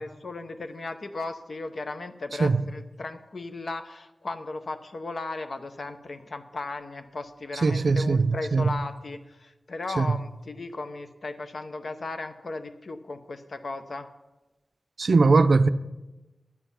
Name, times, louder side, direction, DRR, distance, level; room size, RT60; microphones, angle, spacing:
voice 1, 0.0-14.1, left 3 dB, 70° left, 0.7 m, -36 dB
voice 2, 7.6-8.8 10.0-10.1 15.0-15.7, right 3 dB, 75° right, 0.4 m, -20 dB
10.5 x 8.1 x 5.6 m
wide cardioid pair, 90°, 0 cm